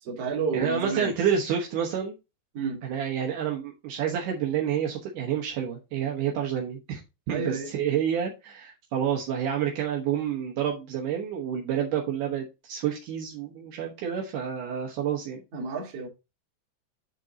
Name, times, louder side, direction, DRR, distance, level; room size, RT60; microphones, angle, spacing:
voice 1, 0.0-1.1 2.5-2.8 7.3-7.7 15.5-16.1, right 5 dB, 45° right, 2.2 m, -30 dB
voice 2, 0.5-2.1 2.8-7.0 7.3-15.4, right 8 dB, 80° right, 1.8 m, -29 dB
9.8 x 3.7 x 3.9 m
omnidirectional pair, 5.3 m